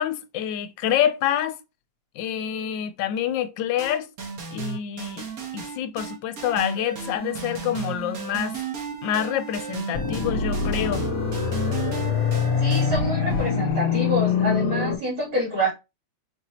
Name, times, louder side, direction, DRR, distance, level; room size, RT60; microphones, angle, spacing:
voice 1, 0.0-1.6 2.2-4.1 4.5-5.3 5.5-8.5 9.0-11.0, left 10 dB, 80° left, 1.2 m, -27 dB
sound 1, 3.8-13.7, right 5 dB, 55° right, 1.3 m, -33 dB
sound 2, 9.9-14.9, left 6 dB, 65° left, 0.9 m, -24 dB
voice 2, 12.6-15.7, equal, 85° right, 3.6 m, -27 dB
5.4 x 2.7 x 2.9 m
omnidirectional pair, 2.0 m